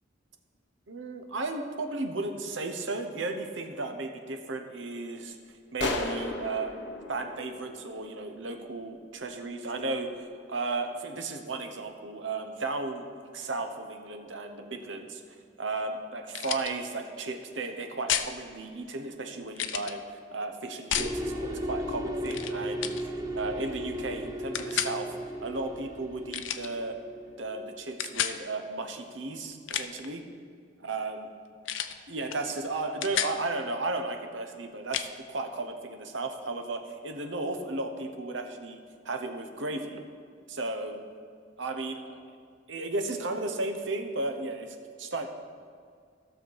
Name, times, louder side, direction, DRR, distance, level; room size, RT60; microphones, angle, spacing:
voice 1, 0.9-5.4 5.7-6.7 7.1-13.0 13.3-15.2 15.6-20.0 20.3-25.2 25.4-27.0 27.4-30.2 30.8-31.3 32.1-40.0 40.5-41.0 41.6-42.2 42.7-45.3, right 3 dB, 85° right, 5 dB, 1.0 m, -34 dB
sound 1, 5.8-8.4, left 2 dB, 70° left, 1.0 m, -34 dB
sound 2, 16.3-16.7 18.1-18.3 19.5-19.9 20.9-21.1 22.3-22.5 22.8-23.0 24.5-24.9 26.3-26.7 28.0-28.4 29.5-30.1 31.7-32.0 32.3-32.5 32.8-33.4 34.9-35.1, left 10 dB, 90° left, 0.5 m, -31 dB
sound 3, 20.9-28.0, equal, 20° right, 0.8 m, -36 dB
15.5 x 6.5 x 4.7 m, 2.1 s
head